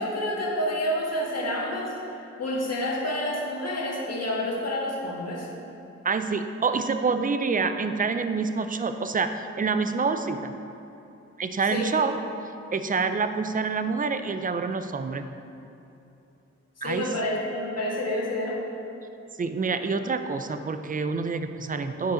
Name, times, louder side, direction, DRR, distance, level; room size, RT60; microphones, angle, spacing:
voice 1, 0.0-5.5 11.7-11.9 16.8-18.6, left 1 dB, 60° left, -3 dB, 1.7 m, -29 dB
voice 2, 6.0-10.5 11.4-12.1 12.7-15.3 16.8-17.1 19.4-22.1, right 4 dB, 30° right, 9 dB, 0.5 m, -27 dB
9.8 x 5.3 x 3.8 m, 2.8 s
cardioid pair, 75°, 29 cm